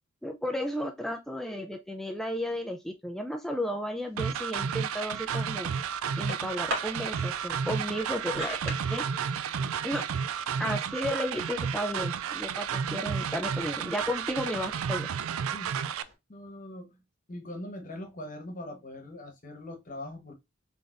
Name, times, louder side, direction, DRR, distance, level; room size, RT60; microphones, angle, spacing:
voice 1, 0.2-5.7 6.2-9.0 9.4-9.5 9.8-10.1 10.6-15.1, equal, ahead, 0.3 m, -33 dB
sound 1, 4.0-16.1, right 1 dB, 70° right, 2.2 m, -44 dB
sound 2, 4.2-16.0, right 7 dB, 85° right, 0.4 m, -32 dB
voice 2, 16.3-17.0 17.3-20.3, left 1 dB, 40° left, 1.1 m, -41 dB
4.0 x 3.4 x 2.4 m
head